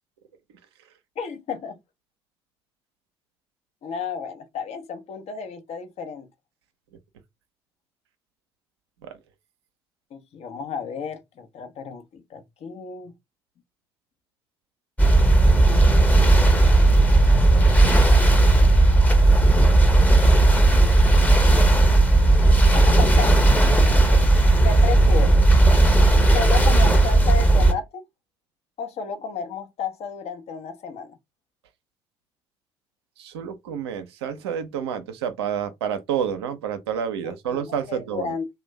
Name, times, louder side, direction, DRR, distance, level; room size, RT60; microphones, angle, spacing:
voice 1, 1.2-1.8 3.8-6.3 10.1-13.1 16.5-17.0 22.7-23.6 24.6-25.4 26.2-28.0 28.8-31.2 37.2-38.5, left 5 dB, 50° left, 0.7 m, -32 dB
sound 1, 15.0-27.7, right 2 dB, 10° left, 0.8 m, -15 dB
voice 2, 24.0-24.4 33.2-38.3, right 8 dB, 80° right, 0.5 m, -29 dB
2.5 x 2.1 x 3.0 m
figure-of-eight pair, 50°, 14 cm